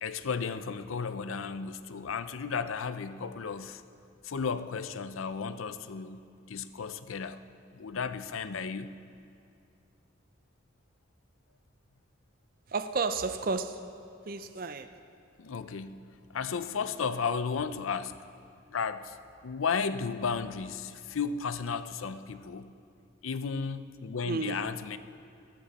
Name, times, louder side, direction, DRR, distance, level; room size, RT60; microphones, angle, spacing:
voice 1, 0.0-3.8 4.2-7.4 7.7-9.0 15.4-16.1 16.3-18.2 18.7-19.2 19.4-22.7 23.2-25.0, left 5 dB, 85° left, 12 dB, 0.6 m, -34 dB
voice 2, 12.7-13.8 14.3-14.9 24.2-24.7, right 4 dB, 45° right, 10 dB, 0.5 m, -32 dB
17.5 x 14.5 x 4.2 m, 2.5 s
head